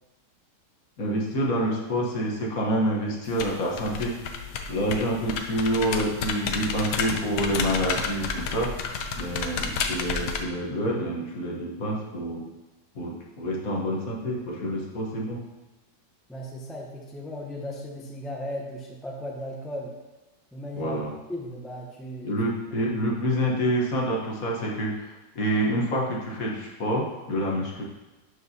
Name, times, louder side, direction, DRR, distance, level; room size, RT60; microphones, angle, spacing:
voice 1, 1.0-4.4 4.7-8.7 9.2-12.4 12.9-15.4 20.7-21.1 22.2-27.8, equal, 55° left, -2 dB, 1.5 m, -27 dB
sound 1, 3.2-10.4, left 5 dB, 75° left, 1.2 m, -31 dB
voice 2, 10.7-11.0 16.3-19.9 20.5-21.0 21.3-22.3 22.8-22.9, left 1 dB, ahead, -2 dB, 0.4 m, -36 dB
11.5 x 4.6 x 2.7 m, 1.1 s
omnidirectional pair, 1.9 m